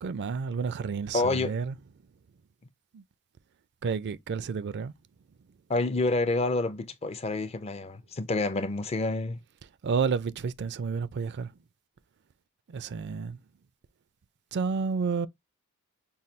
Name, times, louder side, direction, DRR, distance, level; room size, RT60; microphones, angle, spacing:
voice 1, 0.0-1.8 2.9-3.0 3.8-4.9 9.8-11.5 12.7-13.4 14.5-15.3, right 5 dB, 50° right, 0.4 m, -30 dB
voice 2, 1.1-1.6 5.7-9.4, left 2 dB, 30° left, 0.4 m, -28 dB
5.5 x 2.2 x 3.1 m
head